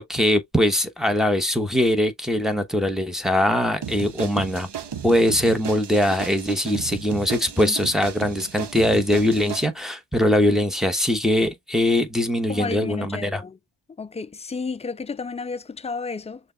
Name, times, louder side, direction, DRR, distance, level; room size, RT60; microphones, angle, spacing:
voice 1, 0.0-4.7 5.0-13.4, left 1 dB, ahead, 1.1 m, -21 dB
sound 1, 3.8-9.7, right 8 dB, 60° right, 1.0 m, -34 dB
voice 2, 12.5-13.5 14.0-16.4, left 4 dB, 15° left, 0.3 m, -32 dB
6.5 x 2.4 x 3.3 m
wide cardioid pair, 110°, 47 cm